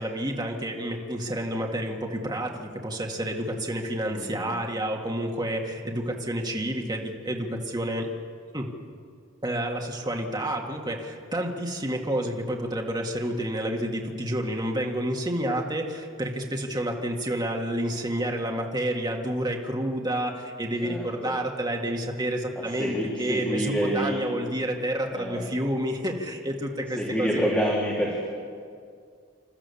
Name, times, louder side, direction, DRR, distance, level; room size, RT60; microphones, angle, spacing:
voice 1, 0.0-8.1 8.5-8.7 9.4-27.3 27.6-27.7, right 1 dB, 20° right, 1 dB, 1.9 m, -29 dB
voice 2, 4.1-4.5 20.8-21.1 22.5-24.2 25.1-25.5 26.9-28.3, equal, 10° left, -5 dB, 3.0 m, -28 dB
28.5 x 14.0 x 7.1 m, 2.2 s
head